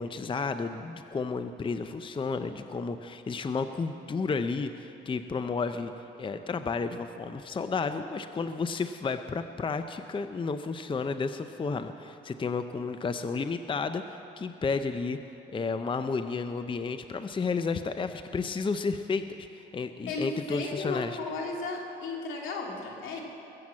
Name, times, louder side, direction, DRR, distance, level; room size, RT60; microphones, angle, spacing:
voice 1, 0.0-5.9 6.2-15.2 15.5-21.2, left 4 dB, 25° left, 9 dB, 0.6 m, -32 dB
voice 2, 20.1-23.2, left 3 dB, 80° left, 0 dB, 2.6 m, -35 dB
22.0 x 7.8 x 7.4 m, 2.9 s
cardioid pair, 90°, 20 cm